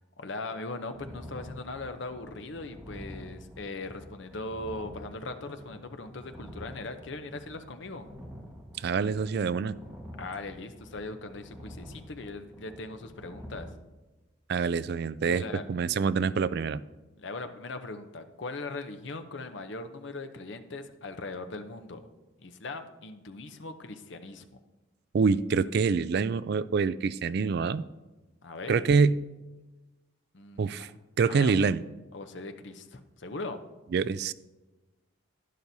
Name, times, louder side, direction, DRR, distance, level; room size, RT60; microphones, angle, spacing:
voice 1, 0.2-8.1 10.2-13.7 15.3-15.6 17.2-22.0 22.4-24.4 28.4-28.8 30.3-30.7 31.3-31.7 32.1-33.6, left 3 dB, 60° left, 8 dB, 0.7 m, -39 dB
sound 1, 0.9-13.7, equal, 5° right, 1.4 m, -47 dB
voice 2, 8.8-9.8 14.5-15.4 15.7-16.8 25.1-27.8 28.7-29.2 30.6-30.9 31.2-31.8 33.9-34.3, right 5 dB, 50° right, 16 dB, 0.3 m, -26 dB
11.5 x 10.5 x 2.7 m, 1.1 s
head